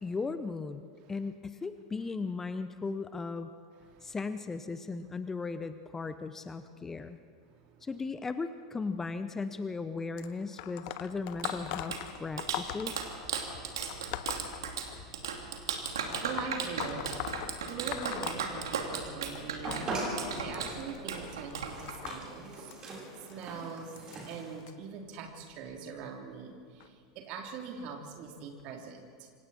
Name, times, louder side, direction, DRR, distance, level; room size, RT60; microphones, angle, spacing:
voice 1, 0.0-3.5 4.0-7.2 7.8-13.0, left 4 dB, 15° left, 11 dB, 0.8 m, -37 dB
sound 1, 10.2-15.3 16.1-19.1 19.4-24.7 25.5-25.8 26.8-26.9 27.8-27.9 28.6-28.7, left 12 dB, 50° left, 0.9 m, -41 dB
Clapping, 11.1-22.2, right 6 dB, 70° right, 2.6 m, -37 dB
voice 2, 16.2-17.1 17.7-19.9 20.4-22.7 23.3-29.3, right 5 dB, 45° right, 2 dB, 3.3 m, -42 dB
sound 2, 19.6-24.6, right 2 dB, 30° right, 7.9 m, -40 dB
27.5 x 24.5 x 4.3 m, 2.2 s
figure-of-eight pair, 85°, 2 cm